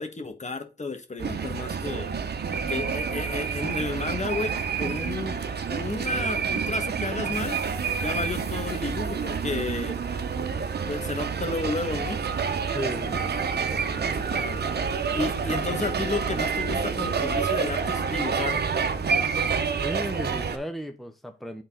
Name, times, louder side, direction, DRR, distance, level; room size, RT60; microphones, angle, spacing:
voice 1, 0.0-2.1 2.7-5.4 5.7-7.6 8.0-10.0 10.3-10.5 10.9-12.2 14.2-14.6 15.1-18.6, left 3 dB, 40° left, 1.5 m, -32 dB
sound 1, 1.2-20.6, right 6 dB, 70° right, 0.9 m, -28 dB
voice 2, 12.7-13.4 13.7-14.5 19.8-21.6, equal, ahead, 0.9 m, -36 dB
8.6 x 4.0 x 3.9 m
cardioid pair, 55°, 18 cm